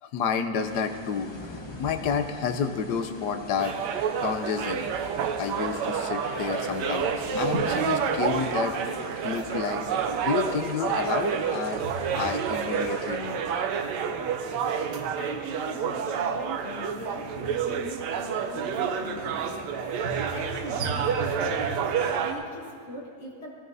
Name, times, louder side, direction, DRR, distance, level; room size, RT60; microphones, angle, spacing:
voice 1, 0.0-3.8 4.2-4.9 5.4-8.8 9.1-11.8 12.2-13.4, left 6 dB, 80° left, 7 dB, 1.3 m, -30 dB
sound 1, 0.5-13.2, left 1 dB, 25° left, 0.5 m, -44 dB
sound 2, 3.6-22.3, right 7 dB, 90° right, 1.3 m, -29 dB
sound 3, 6.4-21.9, right 2 dB, 60° right, 1.7 m, -42 dB
voice 2, 15.2-19.9 20.3-23.5, equal, 45° left, -3 dB, 1.5 m, -40 dB
16.5 x 13.0 x 2.7 m, 2.1 s
omnidirectional pair, 1.8 m